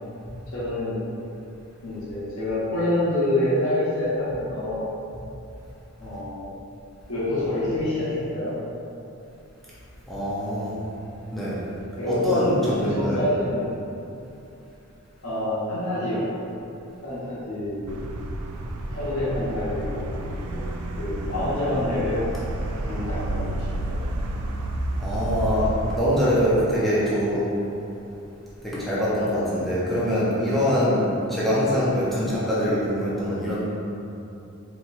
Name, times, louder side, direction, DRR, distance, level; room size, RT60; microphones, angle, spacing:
voice 1, 0.5-1.0 1.8-4.8 6.0-6.5 7.1-8.5 11.9-12.6 12.8-13.7 15.2-16.2 17.0-18.1 18.9-20.1 20.5-20.6 21.0-22.2 22.6-24.0, left 1 dB, 75° left, -10 dB, 1.2 m, -27 dB
voice 2, 10.1-10.8 11.3-11.6 12.1-13.2 25.0-27.5 28.6-33.7, equal, ahead, -10 dB, 0.7 m, -23 dB
sound 1, 17.9-26.0, right 1 dB, 85° right, 0.4 m, -30 dB
4.3 x 3.0 x 2.7 m, 2.8 s
head